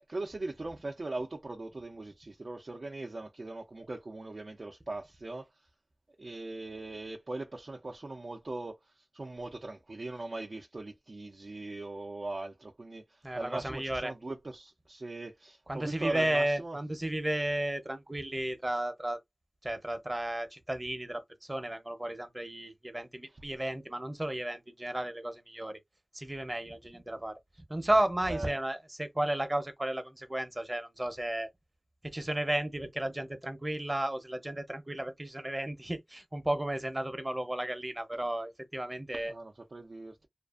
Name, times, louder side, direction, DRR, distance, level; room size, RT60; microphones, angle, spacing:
voice 1, 0.1-5.5 6.2-16.8 28.3-28.5 39.2-40.3, right 2 dB, 60° right, 0.5 m, -40 dB
voice 2, 13.2-14.1 15.7-19.2 19.6-25.8 26.1-27.4 27.7-31.5 32.0-39.3, right 1 dB, 25° right, 0.7 m, -33 dB
2.5 x 2.4 x 2.3 m
wide cardioid pair, 65°, 0 cm